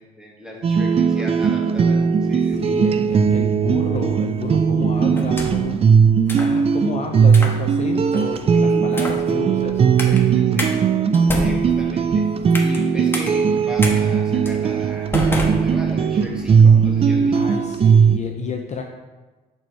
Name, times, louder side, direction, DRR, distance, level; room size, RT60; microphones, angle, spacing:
voice 1, 0.0-2.8 8.5-9.0 10.1-10.8 11.4-12.3 12.6-17.6, equal, 5° right, -2 dB, 1.6 m, -35 dB
sound 1, 0.6-18.2, right 6 dB, 30° right, 0.4 m, -18 dB
voice 2, 2.6-5.9 6.4-10.2 17.3-18.8, left 5 dB, 35° left, 3 dB, 0.5 m, -31 dB
sound 2, 5.1-5.7 6.3-6.6 7.3-7.6 8.1-8.4 8.9-9.3 10.0-10.2 10.6-10.7 11.1-12.8 13.1-13.3 13.8-13.9 14.4-14.6 15.1-16.2, left 1 dB, 10° left, 1.2 m, -28 dB
5.0 x 4.6 x 4.4 m, 1.3 s
hypercardioid pair, 60°, 20 cm